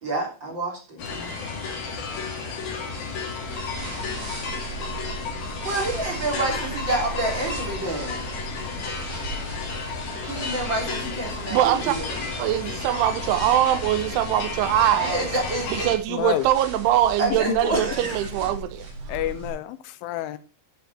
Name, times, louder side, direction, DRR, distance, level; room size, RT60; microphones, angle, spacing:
voice 1, 0.0-1.6 3.8-4.3 5.4-8.3 10.3-12.1 15.0-15.9 17.2-18.3, right 2 dB, 25° right, 3.6 m, -29 dB
sound 1, 1.0-16.0, left 4 dB, 55° left, 4.3 m, -32 dB
sound 2, 3.4-19.5, right 4 dB, 45° right, 6.0 m, -38 dB
voice 2, 11.5-12.0 12.4-15.3 15.7-18.9, right 12 dB, 85° right, 3.0 m, -22 dB
voice 3, 16.1-16.5 17.3-17.6 19.1-20.4, left 14 dB, 85° left, 3.2 m, -28 dB
11.5 x 7.7 x 4.3 m
omnidirectional pair, 5.6 m